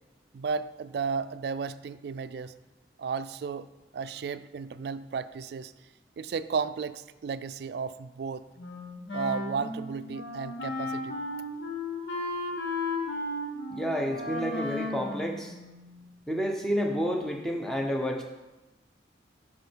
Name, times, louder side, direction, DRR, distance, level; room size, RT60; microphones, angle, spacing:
voice 1, 0.3-2.5 3.0-3.7 3.9-5.7 6.2-8.4 9.1-11.2, right 5 dB, 60° right, 15 dB, 0.3 m, -33 dB
Wind instrument woodwind instrument, 8.6-16.1, left 2 dB, 85° left, 1.3 m, -35 dB
voice 2, 13.7-15.5 16.3-18.2, equal, 5° left, 2 dB, 0.8 m, -30 dB
8.0 x 5.5 x 4.5 m, 1.1 s
head